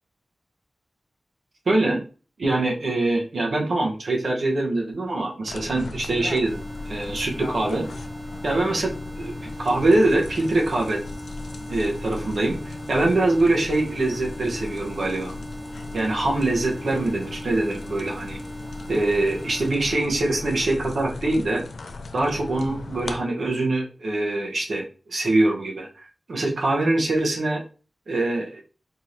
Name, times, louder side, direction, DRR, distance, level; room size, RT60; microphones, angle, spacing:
voice 1, 1.7-2.0 2.4-7.9 8.4-11.0 11.7-15.3 15.9-18.4 18.9-21.6 22.1-27.6 28.1-28.6, right 2 dB, 80° right, -1 dB, 1.1 m, -24 dB
sound 1, 5.5-23.2, left 3 dB, 85° left, 0.5 m, -37 dB
sound 2, 6.5-19.7, equal, 30° right, 0.5 m, -39 dB
4.4 x 2.8 x 3.3 m, 0.36 s
wide cardioid pair, 75°, 0 cm